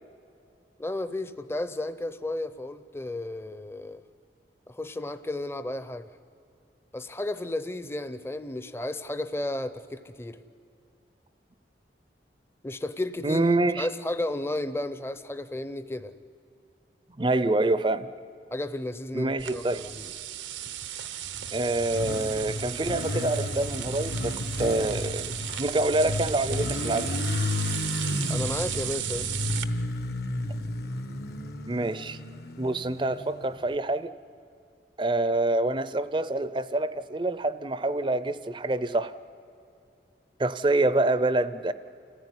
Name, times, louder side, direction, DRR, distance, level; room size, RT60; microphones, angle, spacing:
voice 1, 0.8-4.0 4.7-6.1 6.9-10.4 12.6-13.5 13.8-16.1 18.5-20.1 28.3-29.3, left 1 dB, 15° left, 12 dB, 0.6 m, -33 dB
voice 2, 13.2-13.9 17.2-18.1 19.1-19.9 21.5-25.3 25.6-27.1 31.7-32.2 32.6-34.1 35.0-39.1 40.4-41.7, right 2 dB, 25° right, 14 dB, 0.5 m, -26 dB
sound 1, 19.4-29.6, right 11 dB, 90° right, 0.9 m, -35 dB
Motorcycle, 21.0-33.7, left 1 dB, 60° left, 1.1 m, -32 dB
28.5 x 15.0 x 9.7 m, 2.6 s
head